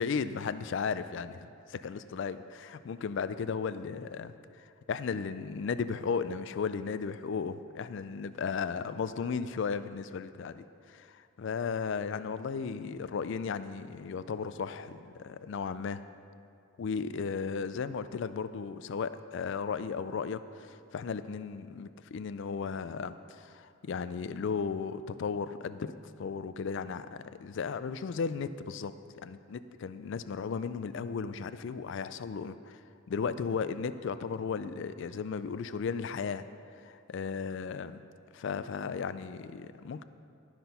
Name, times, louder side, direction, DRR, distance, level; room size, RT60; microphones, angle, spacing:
voice 1, 0.0-4.3 4.9-16.0 16.8-25.9 26.2-28.9 29.2-32.8 33.1-36.5 36.8-38.0 38.3-40.0, left 5 dB, 60° left, 13 dB, 0.3 m, -35 dB
12.5 x 6.0 x 5.4 m, 2.5 s
head